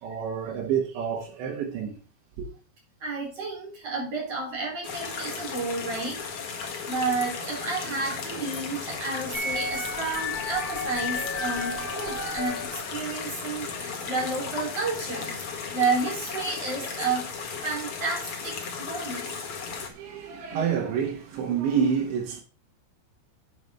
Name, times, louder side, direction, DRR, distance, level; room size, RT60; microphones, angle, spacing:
voice 1, 0.0-2.0 2.4-2.5 19.6-22.4, right 7 dB, 85° right, 4.0 m, -28 dB
voice 2, 3.0-6.2 6.9-17.3 17.6-19.4, right 4 dB, 35° right, 4.9 m, -31 dB
sound 1, 4.8-19.9, left 5 dB, 60° left, 1.4 m, -35 dB
sound 2, 9.3-13.4, left 3 dB, 35° left, 2.4 m, -33 dB
8.6 x 7.2 x 5.7 m
omnidirectional pair, 5.0 m